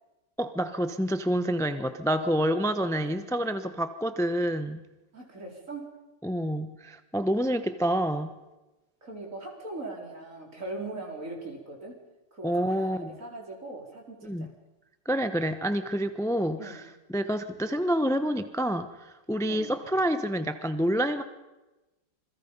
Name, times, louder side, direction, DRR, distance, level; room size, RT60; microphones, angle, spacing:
voice 1, 0.4-4.8 6.2-8.3 12.4-13.1 14.2-14.5 15.0-16.8 17.1-21.2, equal, 5° left, 10 dB, 0.4 m, -28 dB
voice 2, 2.8-3.1 3.4-3.6 5.1-5.9 9.0-12.0 12.3-14.5 16.6-16.8 19.4-19.7, right 2 dB, 40° right, 0 dB, 4.7 m, -40 dB
27.0 x 21.5 x 5.5 m, 1.1 s
omnidirectional pair, 2.0 m